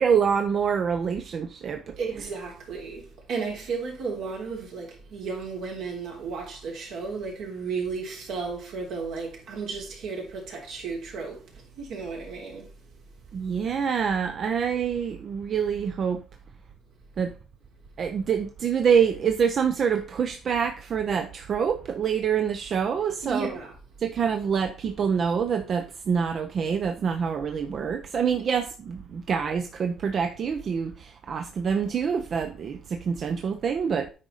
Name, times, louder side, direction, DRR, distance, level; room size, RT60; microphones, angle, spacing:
voice 1, 0.0-2.0 13.3-16.2 17.2-17.3 18.0-23.5 24.0-34.1, right 7 dB, 45° right, 0.7 m, -26 dB
voice 2, 2.0-12.7 23.2-23.7, right 4 dB, 75° right, 3.4 m, -34 dB
8.7 x 5.1 x 4.1 m
cardioid pair, 110°, 0 cm